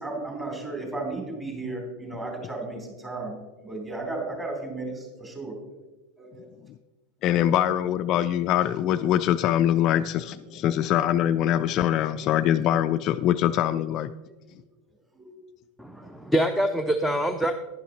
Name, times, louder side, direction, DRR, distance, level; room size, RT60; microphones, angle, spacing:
voice 1, 0.0-5.6 6.2-6.4 7.3-7.6 11.7-11.8 15.1-15.3 15.9-16.3, right 2 dB, 20° right, 1 dB, 3.4 m, -35 dB
voice 2, 7.2-14.1, left 11 dB, 40° left, 11 dB, 0.3 m, -23 dB
voice 3, 15.8-17.5, equal, ahead, 7 dB, 0.6 m, -25 dB
11.0 x 10.0 x 2.9 m, 1.1 s
figure-of-eight pair, 85°, 0 cm